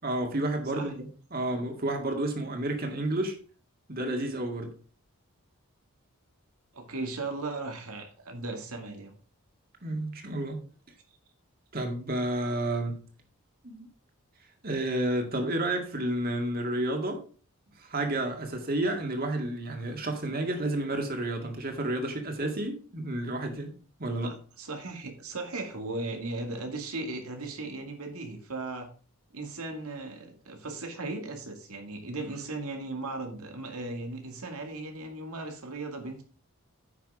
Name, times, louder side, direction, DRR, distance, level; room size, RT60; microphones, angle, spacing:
voice 1, 0.0-3.4 3.9-4.7 9.8-10.6 11.7-13.0 13.6-13.9 14.6-17.2 17.8-23.7 24.0-24.3, right 1 dB, 40° right, 4 dB, 2.1 m, -31 dB
voice 2, 6.7-9.1 24.2-28.9 29.3-36.2, right 2 dB, 85° right, 4 dB, 2.3 m, -37 dB
9.3 x 6.0 x 4.8 m, 0.39 s
head